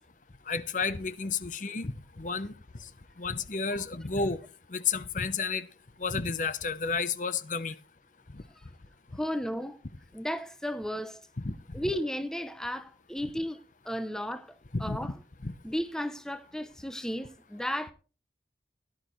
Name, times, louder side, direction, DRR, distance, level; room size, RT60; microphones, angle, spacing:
voice 1, 0.5-2.5 2.8-2.9 3.2-4.4 4.7-5.7 6.0-7.7 8.3-8.4 11.4-11.8 14.7-15.1 15.4-15.5, left 4 dB, 45° left, 0.8 m, -31 dB
voice 2, 9.1-9.8 10.1-11.2 11.7-13.6 13.8-14.5 14.8-15.1 15.6-17.9, equal, 5° left, 0.6 m, -34 dB
16.5 x 11.5 x 3.1 m
head